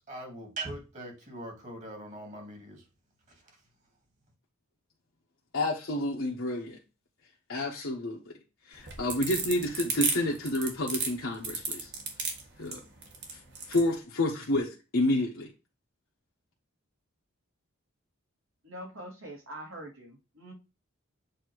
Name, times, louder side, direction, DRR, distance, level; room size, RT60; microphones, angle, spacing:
voice 1, 0.1-2.8, right 2 dB, 35° right, 2.1 m, -41 dB
voice 2, 5.5-6.8 7.5-8.3 8.7-11.9 12.6-12.8 13.3-13.4 13.7-15.5, left 1 dB, 60° left, 1.0 m, -29 dB
sound 1, 8.7-13.9, right 5 dB, 55° right, 1.7 m, -32 dB
voice 3, 18.6-20.5, right 1 dB, 70° right, 2.4 m, -44 dB
7.8 x 2.9 x 4.6 m
head